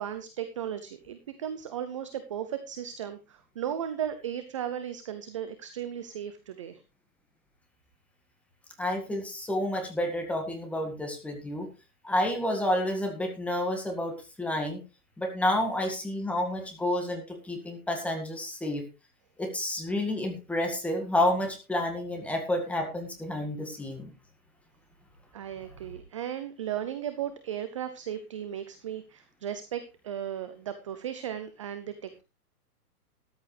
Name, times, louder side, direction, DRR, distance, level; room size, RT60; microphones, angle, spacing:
voice 1, 0.0-6.8 25.3-32.2, right 10 dB, 20° right, 10 dB, 0.5 m, -36 dB
voice 2, 8.8-11.7 12.0-14.8 15.2-18.8 19.4-24.1, left 1 dB, 5° left, 3 dB, 1.8 m, -30 dB
13.5 x 12.0 x 3.3 m, 0.29 s
hypercardioid pair, 155°, 47 cm